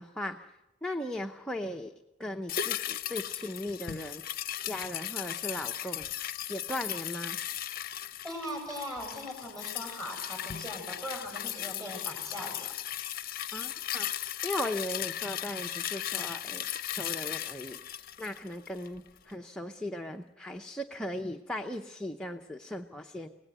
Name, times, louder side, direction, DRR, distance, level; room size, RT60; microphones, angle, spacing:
voice 1, 0.0-1.9 2.2-4.2 4.6-6.1 6.5-7.4 13.5-14.1 14.4-17.8 18.2-23.3, left 1 dB, 5° left, 3 dB, 0.7 m, -38 dB
sound 1, 2.5-19.0 19.3-19.4, left 11 dB, 45° left, 0.7 m, -37 dB
voice 2, 8.2-12.7, equal, 15° right, 2 dB, 7.4 m, -40 dB
25.5 x 18.0 x 8.0 m, 0.98 s
head